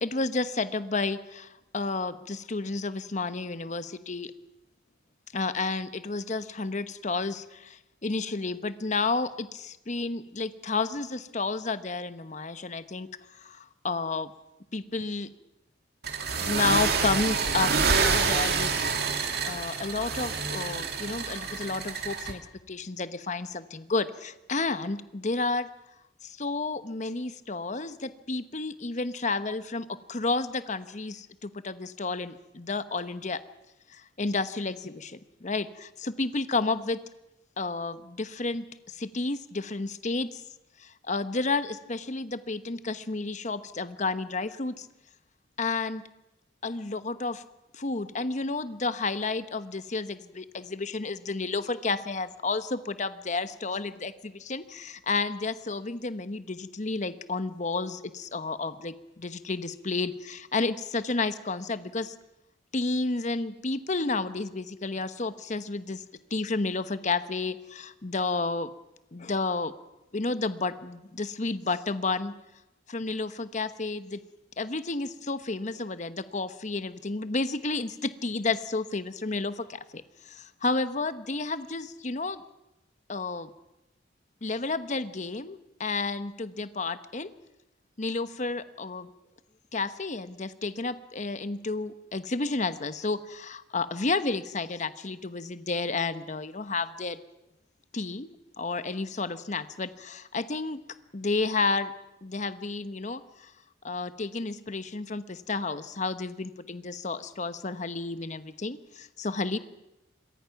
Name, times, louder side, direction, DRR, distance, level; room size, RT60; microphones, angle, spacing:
voice 1, 0.0-4.3 5.3-13.1 13.4-14.3 14.7-15.3 16.4-18.7 19.4-22.4 22.7-25.7 26.2-33.4 33.9-37.0 37.6-40.4 40.8-44.9 45.6-46.0 46.6-47.4 47.7-62.1 62.7-66.0 66.3-68.7 69.1-69.7 70.1-72.3 72.9-74.2 74.6-82.4 83.1-83.5 84.4-87.3 88.0-89.1 89.7-97.2 97.9-98.3 98.6-100.8 101.1-101.9 102.2-103.5 103.8-109.6, left 3 dB, 40° left, 12 dB, 1.0 m, -31 dB
sound 1, 16.0-22.3, right 5 dB, 60° right, 2.5 m, -27 dB
26.5 x 22.0 x 5.9 m, 0.95 s
head